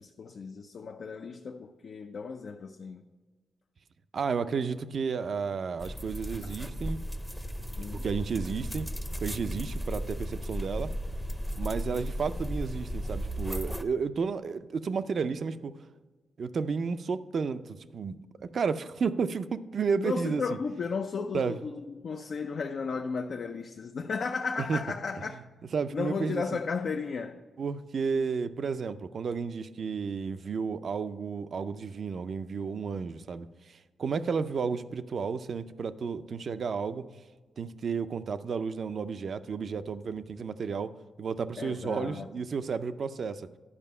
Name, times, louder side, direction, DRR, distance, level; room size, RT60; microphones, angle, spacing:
voice 1, 0.0-3.0 7.8-8.1 20.0-25.4 25.9-27.4 28.1-28.3 41.6-42.3, left 5 dB, 65° left, 0.5 m, -34 dB
voice 2, 4.1-7.0 8.0-8.9 9.2-10.9 11.6-15.7 16.4-20.6 21.3-21.6 24.7-24.8 25.7-26.4 27.6-37.0 37.6-40.9 41.2-43.5, right 5 dB, 60° right, 0.5 m, -32 dB
sound 1, 5.8-13.8, equal, 5° left, 0.6 m, -35 dB
11.0 x 5.1 x 5.5 m
cardioid pair, 75°, 0 cm